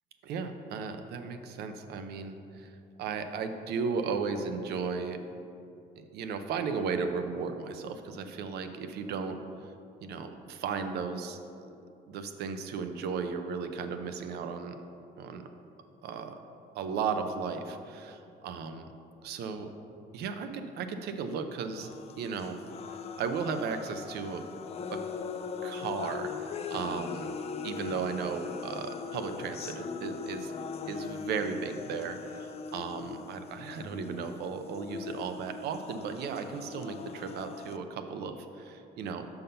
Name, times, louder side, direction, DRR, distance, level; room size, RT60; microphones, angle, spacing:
voice 1, 0.2-5.2 6.0-9.4 10.0-11.7 12.1-14.8 15.2-15.4 16.0-16.3 16.7-18.9 19.2-19.7 20.1-21.9 22.2-22.6 22.9-24.4 24.9-25.0 25.6-27.3 27.6-30.5 30.9-39.3, right 5 dB, 75° right, 8 dB, 0.6 m, -35 dB
sound 1, 21.8-37.8, left 5 dB, 35° left, 0.4 m, -40 dB
5.7 x 5.4 x 5.6 m, 2.6 s
cardioid pair, 110°, 17 cm